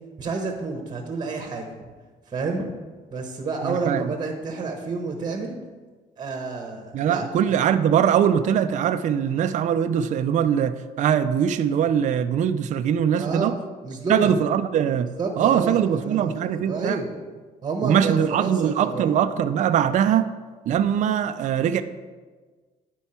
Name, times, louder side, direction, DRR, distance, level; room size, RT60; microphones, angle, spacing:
voice 1, 0.2-1.7 2.3-2.7 3.1-5.5 6.2-7.3 13.1-13.5 13.8-14.3 15.2-17.1 17.6-19.1, right 3 dB, 25° right, 3 dB, 1.0 m, -29 dB
voice 2, 3.6-4.1 6.9-13.6 14.1-15.1 15.4-17.0 17.8-20.3 20.7-21.8, right 9 dB, 45° right, 10 dB, 0.4 m, -22 dB
9.3 x 4.5 x 4.3 m, 1.4 s
cardioid pair, 110°, 17 cm